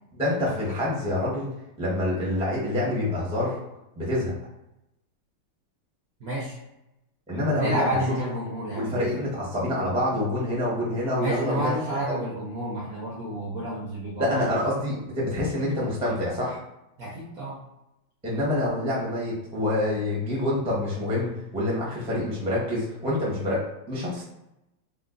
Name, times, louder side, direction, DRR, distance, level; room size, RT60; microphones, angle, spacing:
voice 1, 0.1-1.5 1.8-3.6 4.0-4.3 7.3-7.9 8.7-11.7 12.1-12.2 14.2-16.6 18.2-24.2, left 1 dB, 5° right, -6 dB, 0.4 m, -27 dB
voice 2, 6.2-6.6 7.4-9.2 11.2-14.4 17.0-17.6, right 1 dB, 65° right, -5 dB, 0.9 m, -30 dB
3.7 x 2.1 x 3.8 m, 0.89 s
omnidirectional pair, 2.4 m